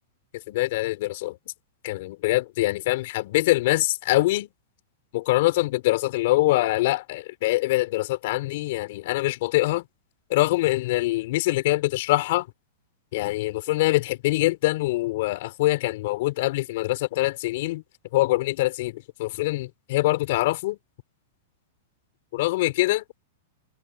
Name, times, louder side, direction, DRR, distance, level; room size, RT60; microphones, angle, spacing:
voice 1, 0.5-1.4 1.8-4.5 5.1-9.8 10.3-12.5 13.1-17.8 18.1-20.8 22.3-23.0, left 18 dB, 50° left, 5.3 m, -24 dB
supercardioid pair, 165°, 0 cm